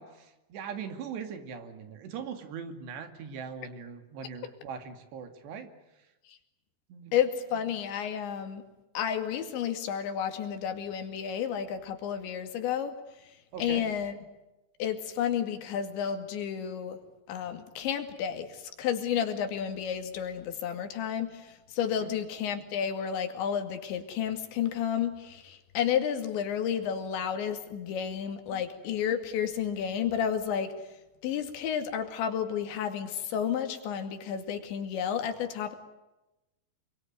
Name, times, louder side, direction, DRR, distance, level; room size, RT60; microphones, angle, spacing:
voice 1, 0.0-5.7 6.9-7.2 13.5-13.8 22.0-22.1 28.5-28.6, right 6 dB, 75° right, 7 dB, 4.5 m, -40 dB
voice 2, 7.1-8.7 8.9-13.0 13.6-14.2 14.8-17.0 17.3-30.8 31.2-35.8, left 8 dB, 90° left, 7 dB, 4.6 m, -31 dB
27.5 x 23.0 x 9.4 m, 0.97 s
omnidirectional pair, 5.0 m